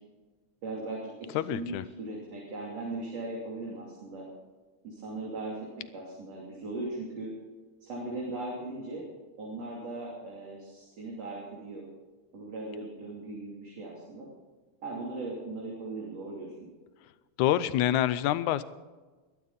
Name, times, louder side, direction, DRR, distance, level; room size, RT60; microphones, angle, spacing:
voice 1, 0.6-4.3 4.8-7.3 7.8-9.1 9.4-11.8 12.3-14.3 14.8-16.5, right 2 dB, 55° right, -4 dB, 4.1 m, -38 dB
voice 2, 1.4-1.9 17.4-18.6, left 12 dB, 85° left, 15 dB, 2.1 m, -26 dB
22.0 x 12.5 x 4.1 m, 1.3 s
omnidirectional pair, 3.4 m